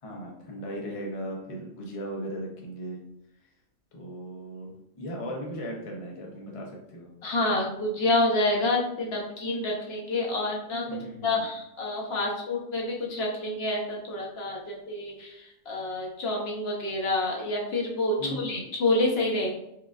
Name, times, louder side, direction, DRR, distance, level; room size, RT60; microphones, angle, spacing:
voice 1, 0.0-3.0 3.9-7.1 10.9-11.5 18.2-18.6, right 1 dB, 40° left, -1 dB, 0.5 m, -37 dB
voice 2, 7.2-10.9 11.2-19.5, left 2 dB, 55° left, -1 dB, 0.9 m, -28 dB
4.6 x 2.3 x 2.4 m, 0.81 s
omnidirectional pair, 1.4 m